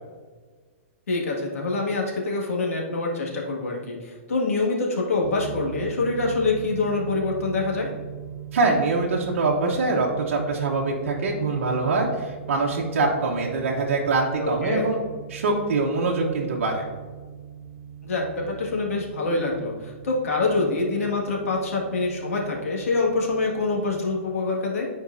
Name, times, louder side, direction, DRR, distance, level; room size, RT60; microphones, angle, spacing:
voice 1, 1.1-7.9 14.4-14.9 18.0-24.9, left 3 dB, 85° left, -1 dB, 1.9 m, -25 dB
sound 1, 5.2-24.2, right 9 dB, 10° right, 0.3 m, -40 dB
voice 2, 8.5-15.0 15.3-16.8, right 3 dB, 60° right, -3 dB, 1.1 m, -24 dB
10.0 x 4.6 x 2.7 m, 1.5 s
hypercardioid pair, 175°, 7 cm